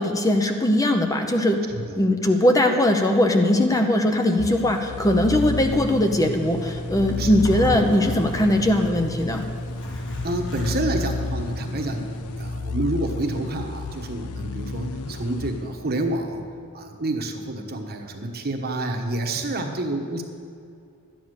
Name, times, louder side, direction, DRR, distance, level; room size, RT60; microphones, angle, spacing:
voice 1, 0.0-1.6 2.0-9.4, left 1 dB, 15° left, 4 dB, 0.7 m, -20 dB
voice 2, 1.7-2.0 7.2-7.5 10.2-12.1 12.4-16.4 16.7-20.2, right 2 dB, 45° right, 3 dB, 1.2 m, -28 dB
sound 1, 4.4-16.2, left 4 dB, 75° left, 0.5 m, -33 dB
Zipper (clothing), 5.3-12.5, equal, 60° left, 1.7 m, -34 dB
12.0 x 9.3 x 6.6 m, 2.4 s
head